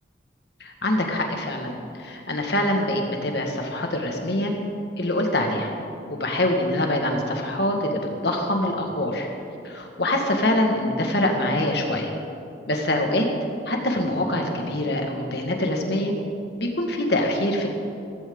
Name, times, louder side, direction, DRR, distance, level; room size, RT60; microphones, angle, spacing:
voice 1, 0.6-4.5 5.0-5.7 6.1-9.3 9.6-12.1 12.7-13.3 13.7-16.1 16.6-17.7, left 1 dB, 60° left, 2 dB, 1.9 m, -24 dB
16.0 x 15.0 x 3.9 m, 2.6 s
head